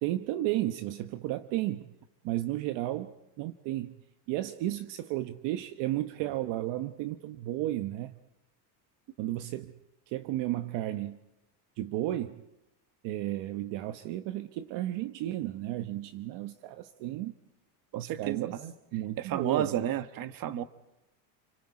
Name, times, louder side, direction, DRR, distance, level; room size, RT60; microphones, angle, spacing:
voice 1, 0.0-1.9 2.2-3.9 4.3-8.1 9.2-9.7 10.1-11.2 11.8-12.4 13.0-17.3 17.9-18.6 18.9-19.7, right 15 dB, 60° right, 1.2 m, -33 dB
voice 2, 17.9-18.7 19.2-20.6, right 10 dB, 40° right, 1.4 m, -32 dB
30.0 x 24.0 x 4.9 m
supercardioid pair, 125°, 50 cm